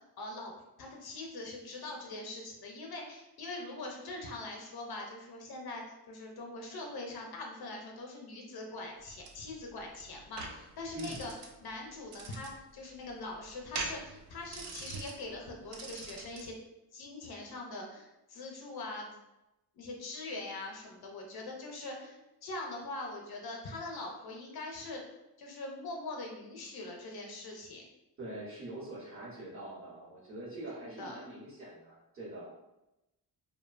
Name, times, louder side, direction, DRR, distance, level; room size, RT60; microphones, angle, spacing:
voice 1, 0.0-11.3 11.6-16.6 16.9-19.1 19.8-25.0 25.4-27.9 31.0-31.2, left 2 dB, 65° left, 1 dB, 0.6 m, -42 dB
sound 1, 9.0-16.5, right 3 dB, 70° right, 0.5 m, -44 dB
voice 2, 10.9-11.2 28.2-32.5, right 1 dB, 30° right, -7 dB, 0.9 m, -44 dB
2.7 x 2.1 x 2.4 m, 0.94 s
wide cardioid pair, 145°, 42 cm